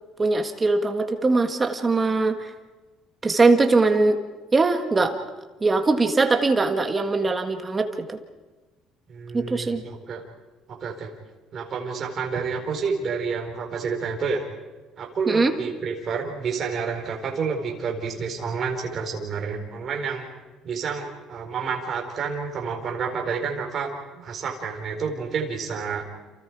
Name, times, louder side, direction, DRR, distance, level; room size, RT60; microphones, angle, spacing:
voice 1, 0.2-2.5 3.2-4.2 4.5-5.1 5.6-8.2 9.3-9.8 15.3-15.5, right 3 dB, 15° right, 5 dB, 1.7 m, -21 dB
voice 2, 9.1-10.2 10.7-11.1 11.5-14.4 15.0-20.3 20.6-26.1, right 5 dB, 35° right, 1 dB, 4.6 m, -29 dB
30.0 x 29.0 x 4.8 m, 1.2 s
cardioid pair, 165°, 0 cm